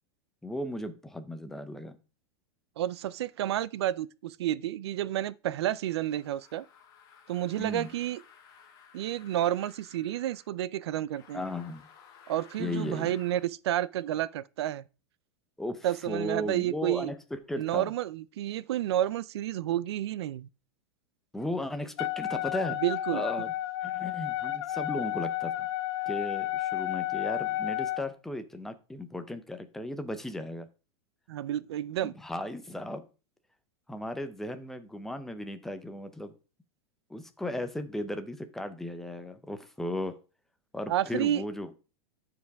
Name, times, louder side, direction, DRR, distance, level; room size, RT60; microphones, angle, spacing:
voice 1, 0.4-1.9 7.6-7.9 11.3-11.8 12.6-13.1 15.6-17.9 21.3-22.8 23.1-23.5 23.8-25.7 26.1-30.7 32.0-33.0 33.9-36.3 37.1-40.2 40.7-41.7, left 1 dB, 5° left, 0.6 m, -36 dB
voice 2, 2.8-6.6 7.3-8.2 8.9-11.4 12.3-14.8 15.8-17.1 17.6-20.5 22.8-23.2 31.3-32.2 40.9-41.4, right 12 dB, 85° right, 0.5 m, -30 dB
sound 1, 5.9-10.5 11.1-13.5, left 7 dB, 25° left, 1.5 m, -56 dB
Wind instrument woodwind instrument, 22.0-28.0, left 14 dB, 90° left, 0.4 m, -32 dB
13.5 x 4.9 x 3.5 m
supercardioid pair, 165°, 13 cm